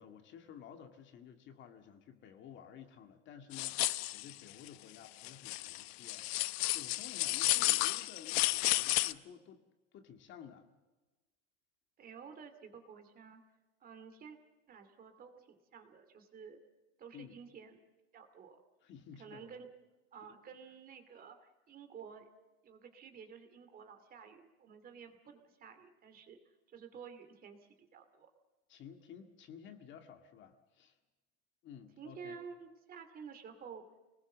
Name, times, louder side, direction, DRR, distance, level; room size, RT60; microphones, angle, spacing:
voice 1, 0.0-6.3 6.7-9.6 9.9-10.7 17.1-17.4 18.8-19.6 20.2-20.3 28.7-31.0 31.6-32.4, left 8 dB, 35° left, 6 dB, 2.0 m, -53 dB
sound 1, 3.5-4.3 4.7-4.8 5.2-9.1, left 19 dB, 70° left, 0.8 m, -32 dB
voice 2, 7.5-7.8 12.0-13.4 13.8-14.4 14.7-16.6 17.0-17.8 18.1-18.6 19.2-19.7 20.1-22.3 22.6-26.4 26.7-28.3 32.0-33.8, right 6 dB, 25° right, 7 dB, 2.5 m, -52 dB
26.5 x 20.0 x 7.4 m, 1.1 s
supercardioid pair, 150°, 32 cm